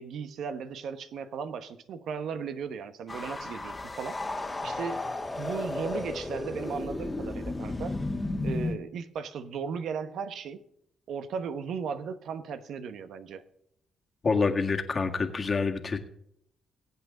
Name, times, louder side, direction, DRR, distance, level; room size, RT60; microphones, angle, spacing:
voice 1, 0.0-4.2 4.6-5.0 5.4-8.0 8.4-10.6 11.1-13.4, right 6 dB, 70° right, 1.1 m, -36 dB
sound 1, 3.1-8.8, left 2 dB, 20° left, 1.5 m, -33 dB
voice 2, 14.2-16.0, left 4 dB, 35° left, 1.8 m, -27 dB
22.0 x 8.4 x 3.8 m
cardioid pair, 90°, 0 cm